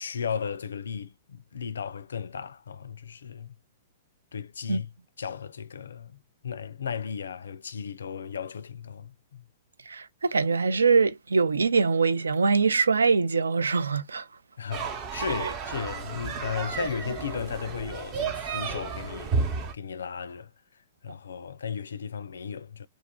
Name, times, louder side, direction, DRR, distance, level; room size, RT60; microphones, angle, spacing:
voice 1, 0.0-3.6 4.3-4.9 5.2-9.5 14.6-20.5 21.0-22.9, left 7 dB, 75° left, 0.4 m, -35 dB
voice 2, 9.9-14.3 15.4-15.5 16.8-16.9, right 4 dB, 80° right, 0.4 m, -23 dB
sound 1, 14.7-19.7, right 5 dB, 35° right, 0.8 m, -32 dB
2.5 x 2.3 x 3.6 m
figure-of-eight pair, 110°, 0 cm